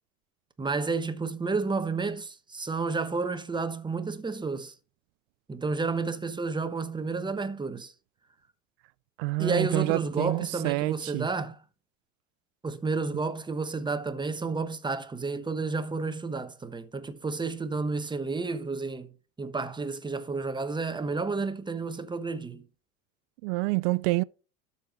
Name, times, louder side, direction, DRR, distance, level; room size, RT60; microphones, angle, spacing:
voice 1, 0.6-4.7 5.5-7.9 9.4-11.6 12.6-19.1 19.4-22.6, right 4 dB, 10° right, 1.1 m, -31 dB
voice 2, 9.2-11.3 23.4-24.2, right 23 dB, 60° right, 0.5 m, -27 dB
12.5 x 4.3 x 4.3 m
hypercardioid pair, 95°, 39 cm